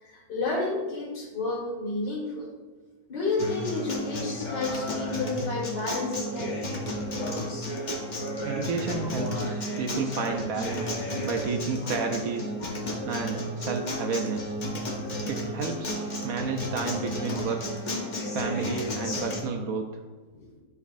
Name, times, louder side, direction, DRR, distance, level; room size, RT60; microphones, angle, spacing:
voice 1, 0.0-2.5 3.1-6.6 12.6-12.7 17.3-17.4 20.3-20.5, left 3 dB, 70° left, -3 dB, 2.3 m, -31 dB
Acoustic guitar, 3.4-19.4, left 1 dB, 55° left, 0.5 m, -32 dB
voice 2, 8.4-12.5 13.1-14.5 15.3-17.6 18.3-19.9, right 4 dB, 70° right, 4 dB, 0.8 m, -31 dB
10.5 x 4.1 x 2.6 m, 1.3 s
omnidirectional pair, 2.0 m